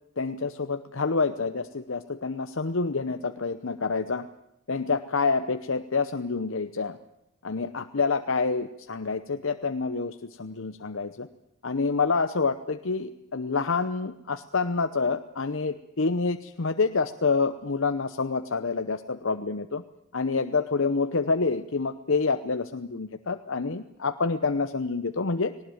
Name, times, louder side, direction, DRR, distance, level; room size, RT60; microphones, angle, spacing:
voice 1, 0.2-4.3 4.7-7.0 7.4-11.3 11.6-19.8 20.1-25.5, left 4 dB, 65° left, 9 dB, 0.8 m, -27 dB
19.0 x 19.0 x 9.1 m, 0.85 s
head